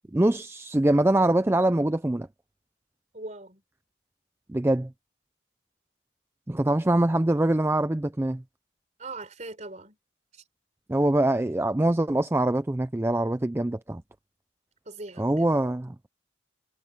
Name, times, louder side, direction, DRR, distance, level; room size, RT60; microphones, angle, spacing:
voice 1, 0.1-2.3 4.5-4.9 6.5-8.4 10.9-14.0 15.2-16.0, right 1 dB, 10° right, 0.4 m, -24 dB
voice 2, 3.1-3.6 9.0-10.0 10.3-10.4 14.9-15.5, right 2 dB, 35° right, 4.3 m, -40 dB
head